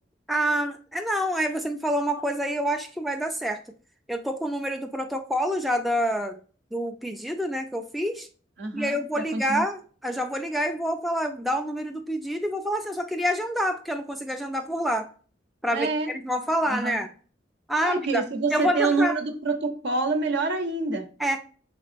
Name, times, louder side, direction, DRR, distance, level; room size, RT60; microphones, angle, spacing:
voice 1, 0.3-3.6 4.1-6.4 6.7-8.3 8.7-15.1 15.6-15.9 16.2-17.1 17.7-18.2 18.5-19.2 21.2-21.4, equal, ahead, 4 dB, 0.3 m, -27 dB
voice 2, 8.6-9.6 15.7-16.1 16.7-17.0 17.8-21.1, right 3 dB, 65° right, 6 dB, 0.8 m, -27 dB
5.0 x 3.6 x 2.5 m, 0.39 s
head